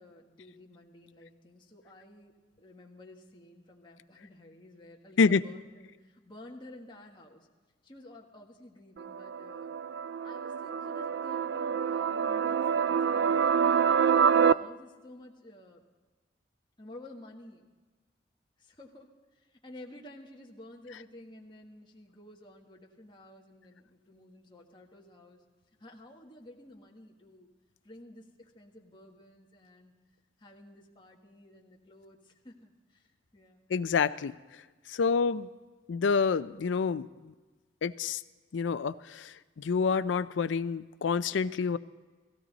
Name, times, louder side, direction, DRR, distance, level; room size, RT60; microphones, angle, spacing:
voice 1, 0.0-7.5 7.8-9.7 10.2-13.7 14.3-15.8 16.8-17.7 18.6-25.4 25.8-27.5 27.8-29.9 30.4-33.6, left 1 dB, 25° left, -1 dB, 1.5 m, -52 dB
sound 1, 9.0-14.5, right 7 dB, 65° right, 0.3 m, -26 dB
voice 2, 33.7-34.4 34.9-35.5 35.9-37.3 37.8-38.2 38.5-41.8, left 5 dB, 85° left, 14 dB, 0.4 m, -28 dB
16.5 x 16.0 x 4.0 m, 1.3 s
head